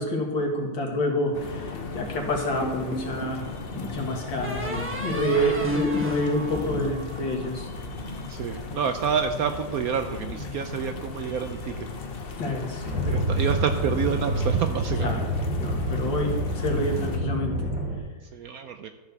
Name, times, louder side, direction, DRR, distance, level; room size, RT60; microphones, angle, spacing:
voice 1, 0.0-3.5 3.7-7.7 12.4-13.2 15.0-15.3 15.6-17.7, left 1 dB, 90° left, 0 dB, 2.6 m, -28 dB
sound 1, 1.3-17.2, left 3 dB, 40° left, 0.9 m, -36 dB
sound 2, 2.6-3.5 4.4-7.8, left 1 dB, 10° right, 0.9 m, -31 dB
voice 2, 8.3-11.7 13.1-15.1 18.3-18.9, right 7 dB, 70° right, 8 dB, 0.9 m, -28 dB
sound 3, 12.9-18.0, right 1 dB, 50° right, 2.9 m, -28 dB
13.0 x 4.8 x 6.6 m, 1.3 s
omnidirectional pair, 2.0 m